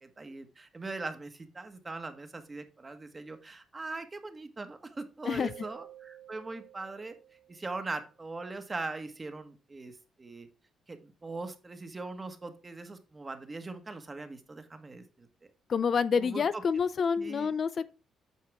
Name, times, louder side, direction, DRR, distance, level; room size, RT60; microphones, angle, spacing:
voice 1, 0.0-7.2 7.5-10.5 10.9-15.3 16.2-16.6 17.2-17.5, right 3 dB, 25° right, 1.5 m, -41 dB
Keyboard (musical), 5.4-8.1, right 12 dB, 75° right, 1.7 m, -52 dB
voice 2, 15.7-17.9, left 6 dB, 50° left, 0.5 m, -28 dB
8.5 x 5.6 x 3.6 m
cardioid pair, 90°, 0 cm